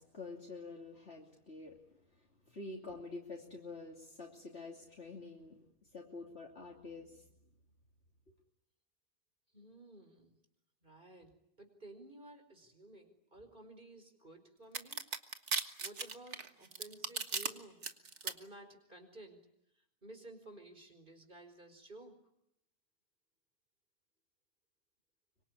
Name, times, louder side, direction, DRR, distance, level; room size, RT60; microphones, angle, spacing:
voice 1, 0.0-1.8 2.5-5.5 5.9-7.2, left 3 dB, 45° left, -1 dB, 3.3 m, -47 dB
voice 2, 9.5-10.4 10.8-15.0 15.8-17.8 18.2-19.5 19.8-22.2, right 2 dB, 35° right, 7 dB, 4.9 m, -54 dB
sound 1, 14.7-17.5 17.8-18.3, right 5 dB, 55° right, 1.9 m, -36 dB
25.0 x 24.5 x 9.8 m, 0.77 s
omnidirectional pair, 1.5 m